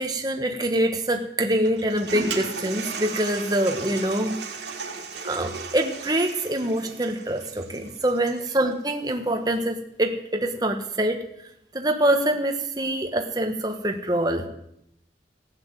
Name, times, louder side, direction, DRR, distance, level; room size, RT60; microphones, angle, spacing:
voice 1, 0.0-4.4 5.2-11.2 11.7-14.5, right 1 dB, 20° right, 4 dB, 1.4 m, -25 dB
Toilet flush, 1.6-8.6, right 4 dB, 75° right, 2.3 m, -35 dB
15.0 x 9.7 x 7.9 m, 0.77 s
head